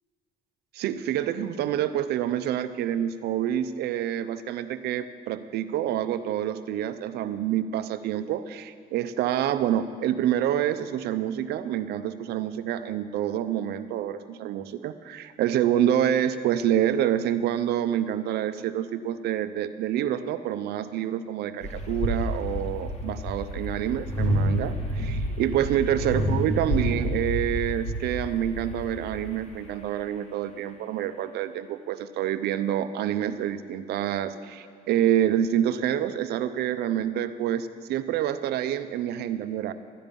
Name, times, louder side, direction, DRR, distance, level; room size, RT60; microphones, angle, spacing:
voice 1, 0.7-39.7, right 10 dB, 75° right, 11 dB, 0.6 m, -27 dB
sound 1, 21.6-29.8, equal, 40° left, 1.6 m, -29 dB
13.0 x 10.0 x 5.3 m, 2.2 s
cardioid pair, 110°, 17 cm